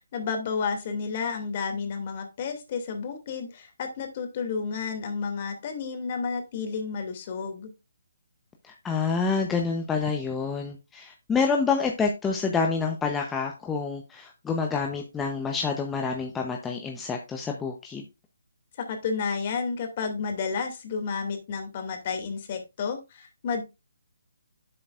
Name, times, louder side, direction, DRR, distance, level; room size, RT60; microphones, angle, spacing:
voice 1, 0.1-7.7 18.8-23.6, left 5 dB, 35° left, 5 dB, 2.5 m, -31 dB
voice 2, 8.6-18.0, left 5 dB, 10° left, 2 dB, 0.8 m, -28 dB
11.0 x 7.7 x 2.5 m, 0.25 s
hypercardioid pair, 160°, 0 cm